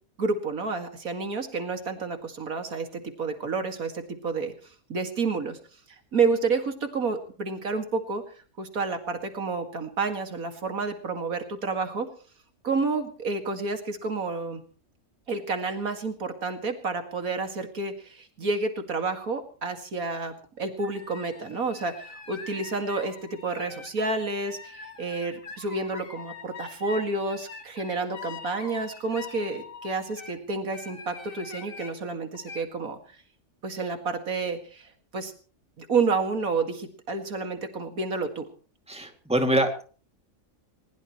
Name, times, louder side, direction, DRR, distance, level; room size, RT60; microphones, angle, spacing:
voice 1, 0.2-4.5 4.9-5.6 6.1-8.2 8.6-12.1 12.6-14.6 15.3-33.0 33.6-35.3 35.8-38.5, right 4 dB, 85° right, 6 dB, 2.6 m, -30 dB
sound 1, 20.8-30.4 30.7-31.9 32.3-32.6, left 5 dB, 70° left, 2.5 m, -44 dB
voice 2, 38.9-39.8, right 1 dB, 5° right, 4 dB, 2.5 m, -24 dB
21.5 x 20.5 x 3.1 m, 0.40 s
omnidirectional pair, 1.5 m